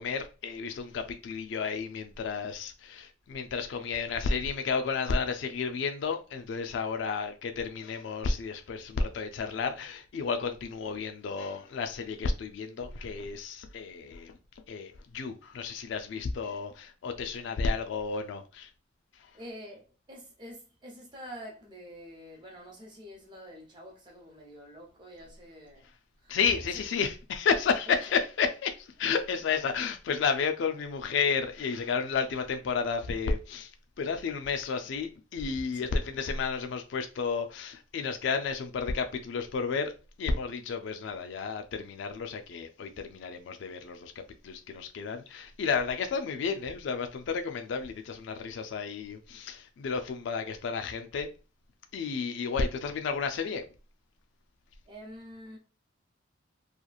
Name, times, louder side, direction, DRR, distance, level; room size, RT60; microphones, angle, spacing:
voice 1, 0.0-14.4 14.7-18.7 19.2-19.3 26.3-33.7 34.0-39.9 40.2-44.1 44.4-51.3 51.9-53.7, left 5 dB, 65° left, 0.3 m, -32 dB
voice 2, 19.3-25.9 26.2-26.4 27.8-28.0 29.5-29.6 35.8-36.0 54.9-55.6, equal, 25° right, 0.7 m, -47 dB
2.9 x 2.4 x 2.3 m
head